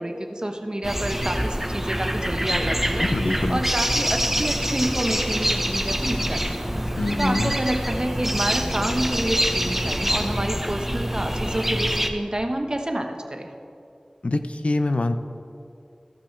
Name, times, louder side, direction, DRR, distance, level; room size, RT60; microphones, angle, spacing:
voice 1, 0.0-3.1 3.5-6.4 7.2-13.5, right 1 dB, 40° right, 4 dB, 0.9 m, -28 dB
sound 1, 0.8-12.1, equal, 10° right, 0.7 m, -25 dB
voice 2, 3.0-3.6 7.0-7.5 14.2-15.2, left 2 dB, 85° left, 9 dB, 0.5 m, -24 dB
14.5 x 6.1 x 4.4 m, 2.6 s
wide cardioid pair, 45°, 2 cm